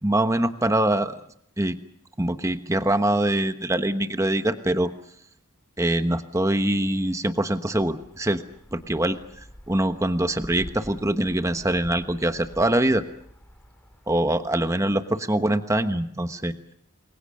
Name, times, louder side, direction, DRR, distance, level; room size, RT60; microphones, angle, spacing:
voice 1, 0.0-1.2 1.6-1.8 2.2-4.9 5.8-8.4 8.7-13.0 14.1-16.5, right 1 dB, 15° right, 9 dB, 1.1 m, -24 dB
sound 1, 7.7-14.5, equal, 10° left, 3.3 m, -47 dB
28.5 x 22.5 x 6.5 m, 0.66 s
head